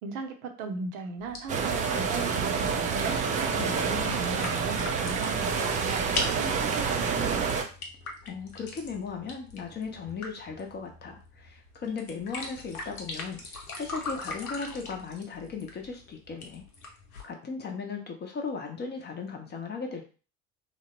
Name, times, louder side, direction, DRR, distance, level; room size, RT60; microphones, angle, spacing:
voice 1, 0.0-3.3 3.8-7.6, right 4 dB, 65° right, 4 dB, 0.7 m, -38 dB
sound 1, 1.2-17.2, left 2 dB, 85° left, 0.6 m, -41 dB
sound 2, 1.5-7.6, right 5 dB, 20° right, 0.3 m, -28 dB
voice 2, 3.6-4.3 8.2-16.6 17.2-20.1, left 5 dB, 25° left, 2 dB, 0.6 m, -37 dB
2.9 x 2.0 x 2.9 m, 0.36 s
figure-of-eight pair, 65°, 42 cm